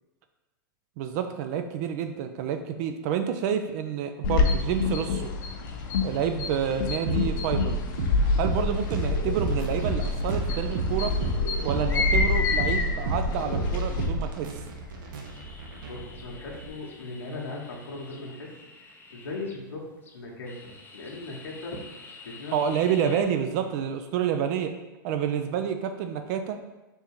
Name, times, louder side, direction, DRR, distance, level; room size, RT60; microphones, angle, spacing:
voice 1, 1.0-5.3 6.0-7.8 8.4-11.1 11.6-14.5 22.5-24.7 25.0-26.6, right 8 dB, 50° right, 8 dB, 0.4 m, -28 dB
sound 1, 4.2-14.1, left 4 dB, 55° left, 0.7 m, -28 dB
sound 2, 7.1-16.7, right 1 dB, 70° right, 0.8 m, -31 dB
sound 3, 9.8-9.9 10.7-10.8 11.7-12.9 14.0-14.1 15.3-19.6 20.1-20.2 20.5-23.2, left 4 dB, 20° left, 0.5 m, -35 dB
voice 2, 15.8-18.5 18.8-19.8 20.1-21.8 22.2-23.1, left 3 dB, 85° left, -2 dB, 1.0 m, -38 dB
3.6 x 2.7 x 4.5 m, 1.0 s
hypercardioid pair, 115°, 12 cm